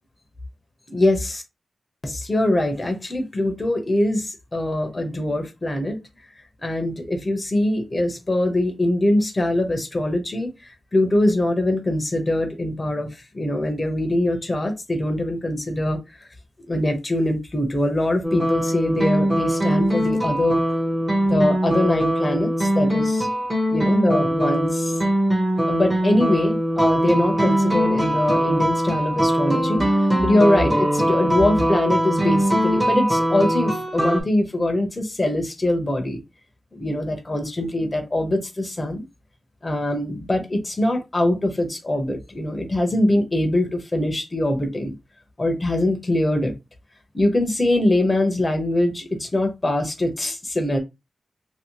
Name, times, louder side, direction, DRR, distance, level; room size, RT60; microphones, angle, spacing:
voice 1, 0.9-1.4 2.0-6.0 6.6-13.1 13.3-16.0 16.7-20.6 21.2-23.3 23.7-25.0 25.7-29.8 30.2-36.2 36.7-39.0 39.6-44.9 45.4-46.5 47.1-50.8, left 1 dB, 20° left, 0.8 m, -23 dB
sound 1, 18.2-34.2, equal, 10° right, 1.0 m, -21 dB
2.9 x 2.8 x 3.0 m
wide cardioid pair, 135°, 0 cm